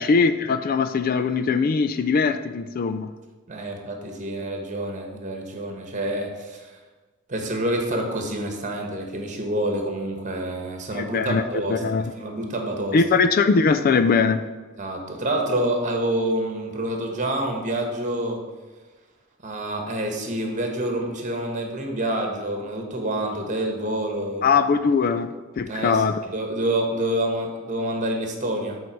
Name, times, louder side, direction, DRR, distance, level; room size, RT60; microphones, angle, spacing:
voice 1, 0.0-3.1 10.9-11.4 11.7-12.1 12.9-14.4 24.4-26.2, left 5 dB, 45° left, 10 dB, 0.4 m, -21 dB
voice 2, 3.5-6.7 7.3-13.0 14.8-18.5 19.4-24.5 25.7-28.8, right 1 dB, 40° right, 3 dB, 1.2 m, -27 dB
7.9 x 4.0 x 5.8 m, 1.3 s
head